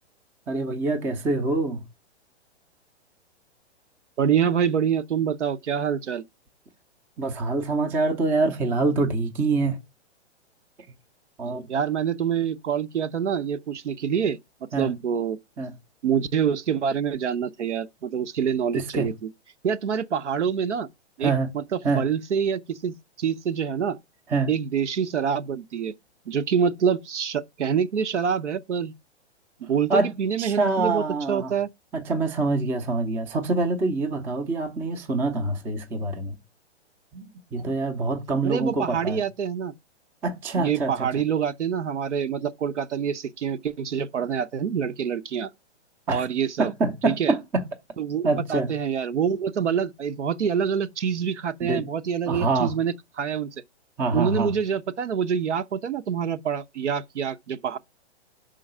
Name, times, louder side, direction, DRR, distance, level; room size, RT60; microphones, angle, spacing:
voice 1, 0.5-1.9 7.2-9.8 11.4-11.7 14.7-14.9 15.6-15.7 18.7-19.1 21.2-21.5 21.8-22.1 24.3-24.5 29.9-30.1 30.4-31.6 31.9-36.4 37.1-39.2 40.2-41.1 46.1-46.3 46.6-47.6 48.2-48.7 51.6-51.9 52.3-52.7 54.0-54.6, right 3 dB, 5° right, 0.3 m, -25 dB
voice 2, 4.2-6.2 11.7-14.4 14.8-15.4 16.0-19.1 19.6-20.9 21.2-24.0 24.5-25.9 26.3-28.9 29.6-31.7 38.4-39.7 40.6-45.5 46.1-46.7 47.0-47.3 48.0-53.5 54.1-57.8, right 7 dB, 85° right, 0.7 m, -26 dB
5.7 x 3.8 x 5.3 m
hypercardioid pair, 130°, 34 cm